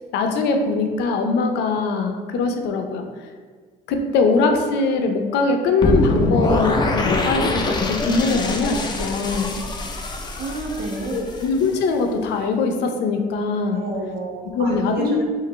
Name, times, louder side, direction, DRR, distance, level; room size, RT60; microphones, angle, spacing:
voice 1, 0.1-3.1 3.9-9.6 11.1-13.8 14.5-15.2, left 3 dB, 80° left, 4 dB, 0.5 m, -22 dB
sound 1, 5.8-11.8, left 2 dB, 25° left, 0.5 m, -24 dB
voice 2, 10.3-11.3 13.7-15.2, right 2 dB, 60° right, -2 dB, 1.0 m, -30 dB
5.0 x 2.5 x 3.2 m, 1.5 s
cardioid pair, 110°, 17 cm